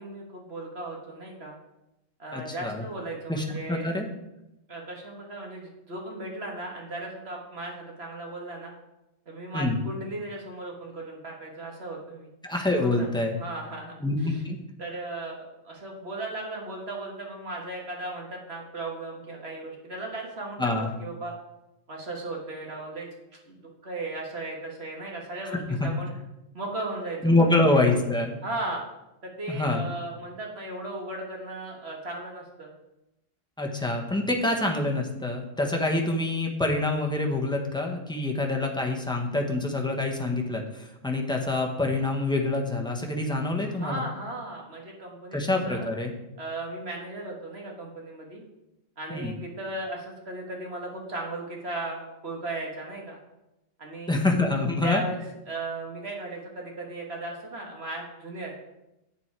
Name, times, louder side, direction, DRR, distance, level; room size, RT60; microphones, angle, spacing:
voice 1, 0.0-1.6 2.2-3.9 4.7-8.7 9.3-12.3 12.8-13.1 13.4-13.9 14.2-14.4 14.8-20.7 21.0-21.3 21.9-23.1 23.5-26.1 26.5-27.6 28.4-28.8 29.2-32.7 43.7-45.4 45.7-45.9 46.4-48.4 49.0-53.2 53.8-54.2 54.8-55.2 55.5-58.5, right 2 dB, 55° right, -1 dB, 1.8 m, -36 dB
voice 2, 2.3-2.8 3.3-4.1 9.5-9.8 12.4-13.3 14.0-14.6 20.6-20.9 25.4-25.9 27.2-28.4 29.5-29.8 33.6-44.0 45.3-46.1 49.1-49.3 54.1-55.0, left 2 dB, 5° left, 1 dB, 1.0 m, -26 dB
8.1 x 7.1 x 4.6 m, 0.92 s
omnidirectional pair, 1.3 m